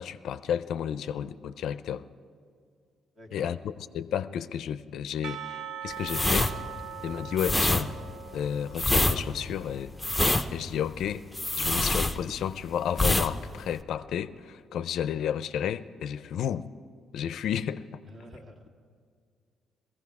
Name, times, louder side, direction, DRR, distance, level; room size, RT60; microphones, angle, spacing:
voice 1, 0.0-2.1 3.3-6.5 7.0-7.9 8.3-9.9 10.5-11.3 11.6-16.7 17.1-18.0, left 9 dB, 75° left, 14 dB, 0.4 m, -32 dB
voice 2, 3.2-3.6 18.1-18.7, equal, 35° right, 2 dB, 1.8 m, -48 dB
Percussion / Church bell, 5.2-10.3, right 7 dB, 70° right, 0.6 m, -42 dB
sound 1, 6.0-12.6 12.9-13.3 13.6-13.8, left 2 dB, 5° left, 0.6 m, -25 dB
19.0 x 15.0 x 4.8 m, 2.2 s
cardioid pair, 120°, 0 cm